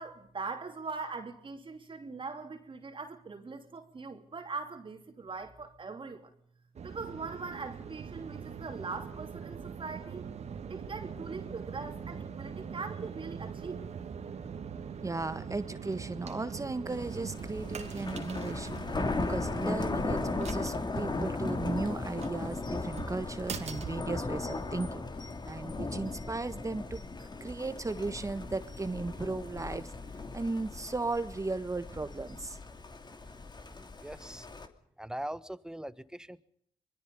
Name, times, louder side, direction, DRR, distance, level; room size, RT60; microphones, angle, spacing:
voice 1, 0.0-6.3 6.8-10.3 10.7-13.8, right 4 dB, 40° right, 3.0 m, -41 dB
sound 1, 6.8-24.8, right 6 dB, 55° right, 2.3 m, -43 dB
voice 2, 15.0-25.0 25.5-27.0 27.4-29.9 30.3-32.6, right 3 dB, 25° right, 1.4 m, -36 dB
Thunder, 16.9-34.7, left 3 dB, 35° left, 2.6 m, -37 dB
voice 3, 33.9-34.5 35.0-36.4, right 1 dB, 5° right, 1.3 m, -41 dB
25.5 x 21.5 x 5.5 m
hypercardioid pair, 45°, 14 cm